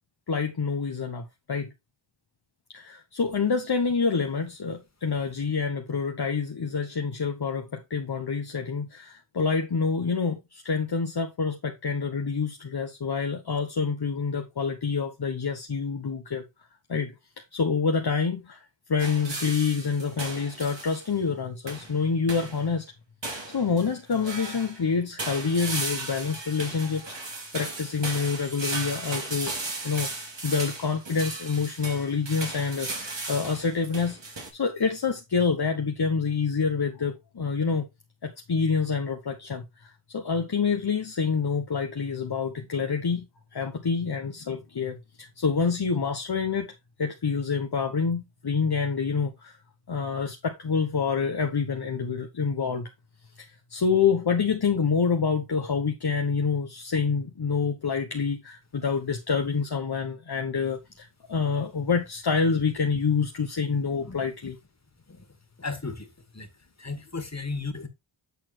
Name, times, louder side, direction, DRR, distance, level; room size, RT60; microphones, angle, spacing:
voice 1, 0.3-1.7 2.7-16.4 16.9-17.1 17.5-18.6 18.9-22.8 23.2-29.6 29.8-30.1 30.4-37.9 38.2-43.3 43.5-46.7 47.0-49.6 49.9-52.9 53.4-64.5, left 5 dB, 50° left, 1.2 m, -27 dB
sound 1, 19.0-21.1 21.7-22.0 22.3-22.7 23.2-24.8 25.2-34.5, right 3 dB, 60° right, 3.2 m, -36 dB
voice 2, 65.6-66.5 66.8-67.9, left 3 dB, 30° left, 2.3 m, -35 dB
9.5 x 4.3 x 4.4 m
wide cardioid pair, 55°, 50 cm